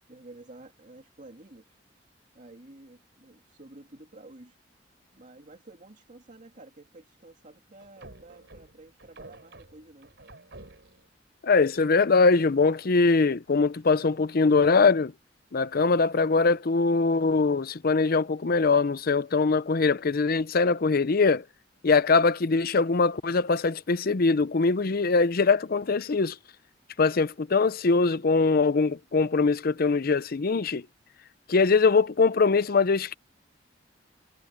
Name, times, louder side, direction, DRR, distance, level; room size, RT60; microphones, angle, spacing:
voice 1, 0.1-1.7 2.3-4.6 5.1-10.1, right 2 dB, 45° right, 2.4 m, -50 dB
sound 1, 7.8-11.1, right 2 dB, 70° right, 4.9 m, -49 dB
voice 2, 11.4-15.1 15.5-21.4 21.8-26.4 27.0-30.8 31.5-33.1, left 4 dB, 55° left, 0.6 m, -22 dB
head